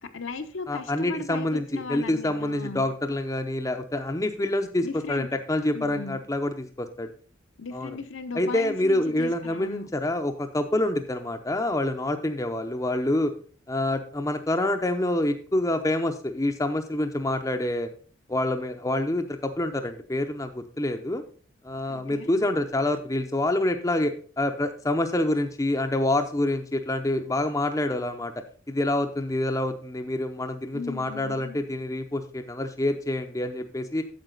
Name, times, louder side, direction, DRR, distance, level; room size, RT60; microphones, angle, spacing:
voice 1, 0.0-2.9 4.8-5.3 5.7-6.2 7.6-9.9 21.9-22.3 30.7-31.6, left 4 dB, 70° left, 7 dB, 0.9 m, -37 dB
voice 2, 0.7-7.1 7.7-8.0 8.3-13.3 13.7-17.9 18.3-21.2 21.6-34.0, left 1 dB, 15° left, 6 dB, 0.6 m, -27 dB
9.0 x 7.2 x 3.9 m, 0.42 s
head